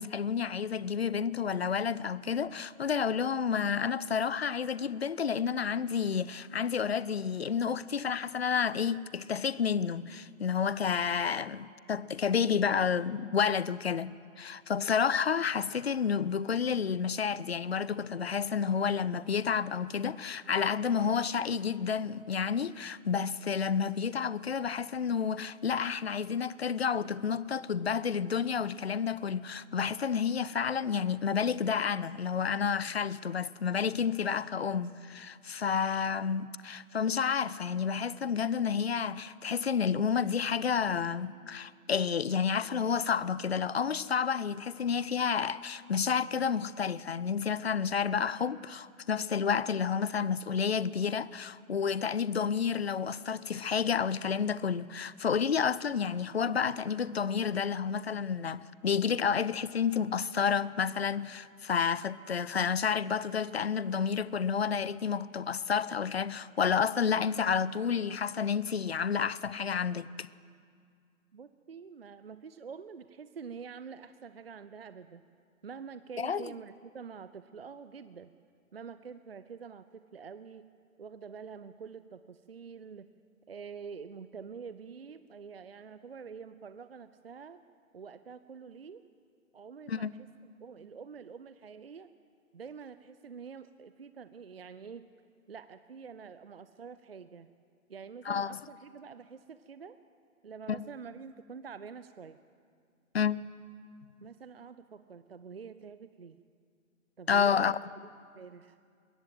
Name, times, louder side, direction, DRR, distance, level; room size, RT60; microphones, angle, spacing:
voice 1, 0.0-70.3 76.2-76.5 89.9-90.1 98.3-98.6 100.7-100.8 103.1-103.4 107.3-107.8, left 6 dB, 50° left, 0.6 m, -30 dB
voice 2, 71.3-75.2 75.6-78.3 78.7-80.7 81.0-83.1 83.5-87.6 87.9-89.0 89.5-92.1 92.5-95.0 95.5-97.5 97.9-100.0 100.4-102.4 104.2-106.4 107.2-107.8 108.4-108.8, right 6 dB, 45° right, 0.6 m, -46 dB
22.0 x 17.0 x 7.7 m
figure-of-eight pair, 150°, 42 cm